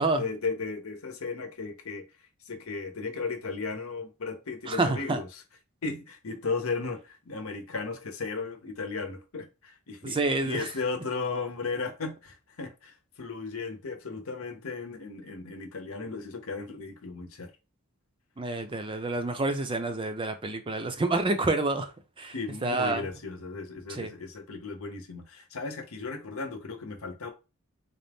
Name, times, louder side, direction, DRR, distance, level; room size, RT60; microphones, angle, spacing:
voice 1, 0.0-2.0 2.5-5.4 5.8-10.2 10.4-17.5 22.3-27.3, left 4 dB, 75° left, 0.9 m, -35 dB
voice 2, 4.7-5.2 10.1-10.7 18.4-21.9 22.2-22.3 22.6-23.0 23.9-24.1, right 2 dB, 25° right, 0.5 m, -28 dB
3.9 x 2.5 x 3.4 m
head